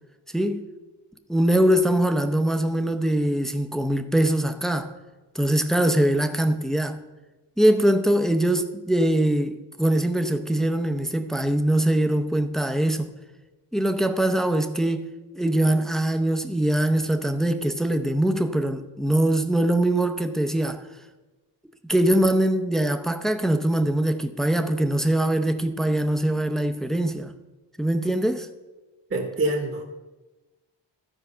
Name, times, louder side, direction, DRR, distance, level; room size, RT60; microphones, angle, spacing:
voice 1, 0.3-0.7 1.3-4.9 5.3-7.0 7.6-13.1 13.7-15.1 15.3-20.8 21.8-27.3 27.8-28.5, right 1 dB, ahead, 0.6 m, -22 dB
voice 2, 29.1-29.8, right 2 dB, 30° right, 1.1 m, -25 dB
13.0 x 4.7 x 5.5 m
cardioid pair, 85°, 45 cm